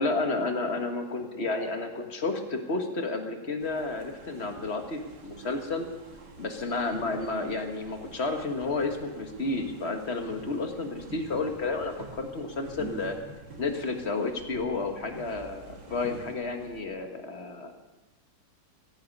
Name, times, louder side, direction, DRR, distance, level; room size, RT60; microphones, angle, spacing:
voice 1, 0.0-5.9 6.4-13.1 13.6-17.7, left 3 dB, 35° left, 4 dB, 1.5 m, -31 dB
sound 1, 3.6-16.8, right 3 dB, 60° right, 2.4 m, -47 dB
15.5 x 15.0 x 5.3 m, 1.1 s
omnidirectional pair, 2.1 m